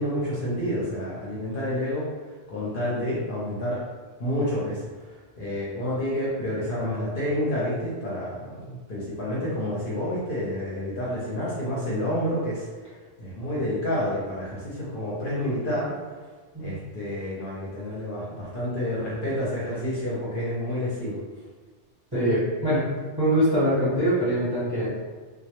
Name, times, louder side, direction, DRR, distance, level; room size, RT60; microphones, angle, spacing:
voice 1, 0.0-2.0 2.5-3.8 4.2-4.8 5.4-12.7 13.2-15.9 16.6-21.2, left 1 dB, 55° left, -7 dB, 0.7 m, -29 dB
voice 2, 22.1-22.9 23.2-24.9, equal, 25° right, -11 dB, 0.6 m, -23 dB
2.1 x 2.1 x 2.8 m, 1.4 s
omnidirectional pair, 1.2 m